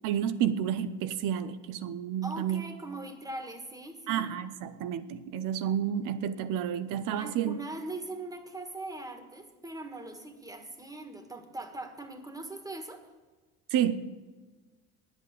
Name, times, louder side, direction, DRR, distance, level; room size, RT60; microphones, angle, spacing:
voice 1, 0.0-2.6 4.1-7.6 13.7-14.0, right 9 dB, 70° right, 12 dB, 0.9 m, -30 dB
voice 2, 2.2-4.3 7.2-13.1, right 2 dB, 10° right, 6 dB, 1.7 m, -41 dB
10.0 x 8.2 x 7.7 m, 1.3 s
cardioid pair, 105°, 33 cm